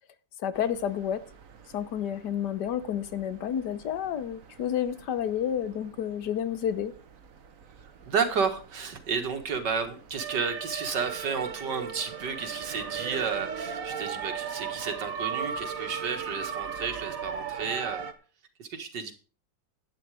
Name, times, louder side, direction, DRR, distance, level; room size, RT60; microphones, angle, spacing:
voice 1, 0.4-1.2 1.7-6.9, left 9 dB, 75° left, 1.5 m, -30 dB
sound 1, 0.5-18.1, right 7 dB, 55° right, 1.5 m, -39 dB
voice 2, 8.1-18.0 18.6-19.1, right 6 dB, 85° right, 2.3 m, -32 dB
12.0 x 9.0 x 4.9 m
omnidirectional pair, 1.8 m